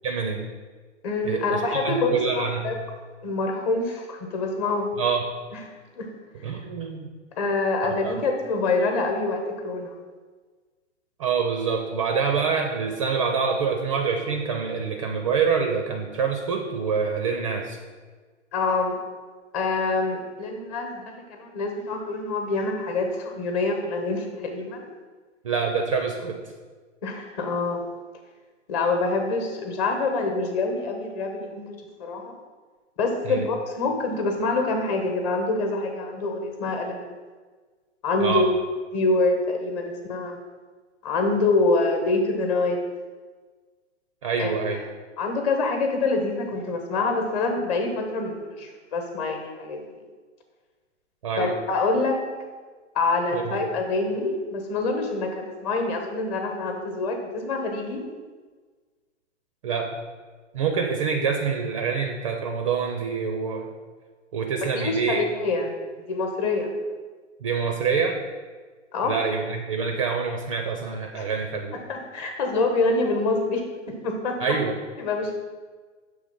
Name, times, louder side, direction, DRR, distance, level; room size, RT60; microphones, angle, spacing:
voice 1, 0.0-0.5 1.2-2.8 5.0-5.3 6.4-7.1 8.0-8.2 11.2-17.8 25.4-26.4 33.2-33.4 38.2-38.5 44.2-44.8 51.2-51.5 53.3-53.6 59.6-59.9 60.5-63.7 64.3-65.2 67.4-68.2 69.0-71.8 74.4-74.7, right 5 dB, 30° right, 3 dB, 0.4 m, -26 dB
voice 2, 1.0-2.8 3.2-4.9 5.5-5.6 5.9-6.1 7.4-9.9 18.5-18.9 19.5-24.9 27.0-27.8 28.7-31.7 32.0-32.4 33.0-37.2 38.0-38.5 38.9-40.4 41.0-42.8 44.4-44.5 45.2-49.8 51.4-52.2 52.9-58.0 64.7-65.7 66.1-66.7 68.9-69.2 71.1-71.3 71.7-74.4 75.0-75.4, left 3 dB, 35° left, 4 dB, 1.0 m, -26 dB
6.4 x 3.3 x 5.2 m, 1.4 s
hypercardioid pair, 125°, 37 cm